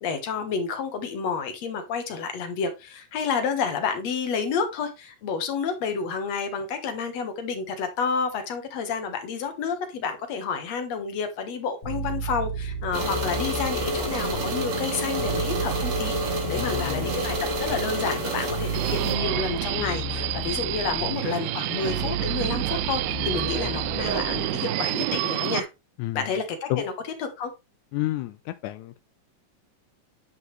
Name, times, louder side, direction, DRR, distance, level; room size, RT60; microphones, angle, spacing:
voice 1, 0.0-25.7 26.1-26.9 27.2-27.5, left 5 dB, 60° left, 2.3 m, -30 dB
sound 1, 11.8-25.2, right 2 dB, 40° left, 3.6 m, -34 dB
sound 2, 12.9-19.1, right 2 dB, 55° right, 3.3 m, -29 dB
voice 2, 16.6-17.1 26.0-26.2 26.7-26.8 27.9-29.0, left 16 dB, 80° left, 1.8 m, -30 dB
Subway metro underground, 18.7-25.6, right 15 dB, 85° right, 1.6 m, -29 dB
9.7 x 5.7 x 3.3 m
omnidirectional pair, 3.8 m